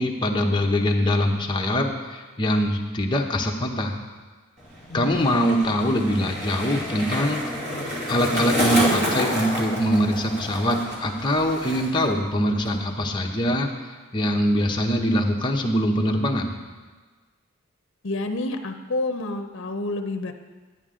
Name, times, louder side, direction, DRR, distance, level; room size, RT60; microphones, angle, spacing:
voice 1, 0.0-4.0 4.9-7.4 8.1-13.7 14.1-16.5, equal, 20° left, 1 dB, 0.8 m, -23 dB
Skateboard, 4.6-12.1 12.4-12.9, equal, 30° right, 2.4 m, -29 dB
voice 2, 4.9-5.4 18.0-20.3, left 2 dB, 60° left, 7 dB, 0.7 m, -29 dB
10.5 x 9.3 x 3.7 m, 1.4 s
head